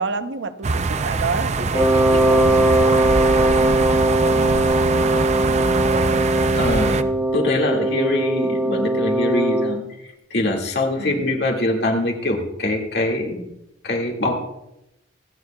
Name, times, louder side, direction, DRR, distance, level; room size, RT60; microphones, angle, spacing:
voice 1, 0.0-3.0 3.4-5.7 11.0-11.4, right 4 dB, 80° right, 10 dB, 0.8 m, -31 dB
sound 1, 0.6-7.0, right 4 dB, 40° right, 0.5 m, -23 dB
Wind instrument woodwind instrument, 1.7-9.8, right 1 dB, 10° right, 1.0 m, -20 dB
voice 2, 6.5-7.0 7.3-9.8 10.3-13.5 13.8-14.3, left 2 dB, 60° left, 0 dB, 2.2 m, -23 dB
27.0 x 9.5 x 2.4 m, 0.87 s
head